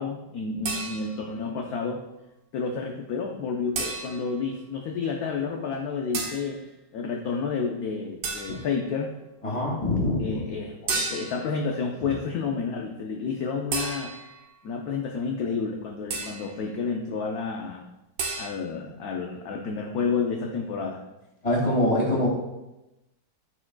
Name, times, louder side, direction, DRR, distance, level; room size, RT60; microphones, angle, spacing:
voice 1, 0.0-2.0 2.5-6.6 6.9-9.1 10.2-14.1 14.6-17.9 18.4-21.0, left 5 dB, 65° left, 0 dB, 1.1 m, -30 dB
sound 1, 0.7-1.4 3.8-4.4 6.1-6.5 8.2-8.8 10.9-11.5 13.7-14.4 16.1-16.6 18.2-18.5, right 4 dB, 85° right, 1.7 m, -32 dB
voice 2, 9.4-10.4 12.0-12.1 21.4-22.3, left 1 dB, 20° left, -3 dB, 2.1 m, -24 dB
12.5 x 4.8 x 2.3 m, 0.96 s
omnidirectional pair, 2.0 m